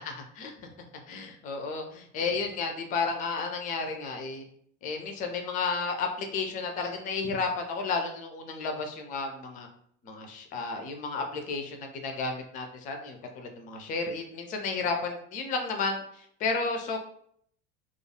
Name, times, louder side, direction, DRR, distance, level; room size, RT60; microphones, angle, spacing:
voice 1, 0.0-0.5 1.1-4.4 4.8-9.7 10.0-17.0, left 4 dB, 25° left, 4 dB, 0.3 m, -32 dB
2.4 x 2.2 x 2.7 m, 0.64 s
figure-of-eight pair, 75°, 37 cm